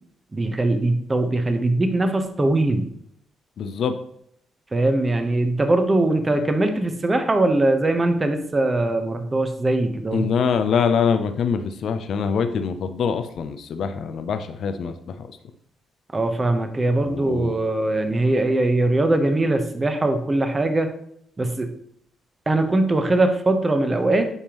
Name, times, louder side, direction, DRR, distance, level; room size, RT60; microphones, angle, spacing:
voice 1, 0.3-2.9 4.7-10.2 16.1-20.9 21.4-21.7 22.5-24.3, right 2 dB, 25° right, 7 dB, 0.9 m, -21 dB
voice 2, 3.6-4.0 10.1-15.3 17.0-17.6, left 6 dB, 65° left, 9 dB, 0.5 m, -24 dB
9.6 x 3.6 x 3.0 m, 0.72 s
cardioid pair, 90°, 0 cm